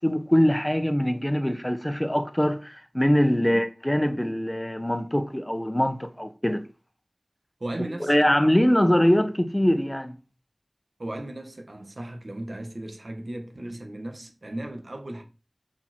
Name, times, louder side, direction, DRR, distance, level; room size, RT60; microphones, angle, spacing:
voice 1, 0.0-6.6 8.0-10.2, equal, 15° left, 1.2 m, -23 dB
voice 2, 7.6-8.1 11.0-15.2, right 1 dB, 80° right, 1.9 m, -36 dB
7.4 x 6.9 x 4.6 m
wide cardioid pair, 45°, 0 cm